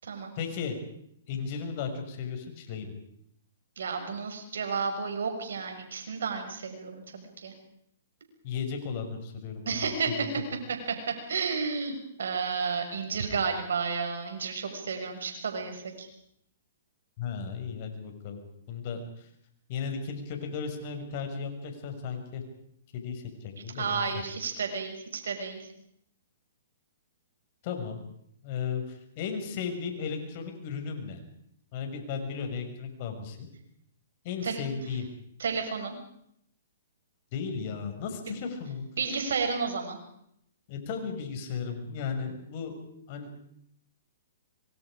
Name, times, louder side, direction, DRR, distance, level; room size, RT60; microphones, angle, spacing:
voice 1, 0.4-0.8 1.3-2.9 8.4-10.3 17.2-18.4 18.7-19.3 19.7-22.4 22.9-24.0 27.6-28.0 28.4-31.2 31.7-33.5 34.2-35.1 37.3-38.9 40.7-42.7 43.1-43.4, left 6 dB, 45° left, 5 dB, 6.1 m, -35 dB
voice 2, 3.8-7.5 9.6-10.3 11.3-16.1 23.7-25.6 34.4-34.6 35.4-36.0 39.0-40.0, right 5 dB, 75° right, 5 dB, 6.4 m, -32 dB
26.0 x 24.5 x 5.1 m, 0.73 s
hypercardioid pair, 125°, 0 cm